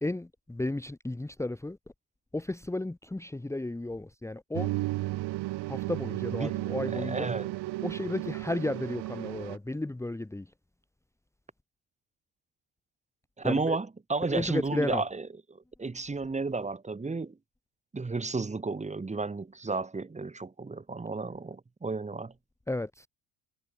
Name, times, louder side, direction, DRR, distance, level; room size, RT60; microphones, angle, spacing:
voice 1, 0.0-1.8 2.3-4.7 5.7-7.3 7.8-10.5 13.4-13.8 14.3-15.0 22.7-23.1, left 2 dB, 5° left, 1.3 m, -33 dB
sound 1, 4.5-9.6, right 18 dB, 75° right, 3.1 m, -34 dB
voice 2, 6.3-7.5 13.4-17.4 17.9-22.3, right 3 dB, 15° right, 2.0 m, -33 dB
cardioid pair, 110°, 41 cm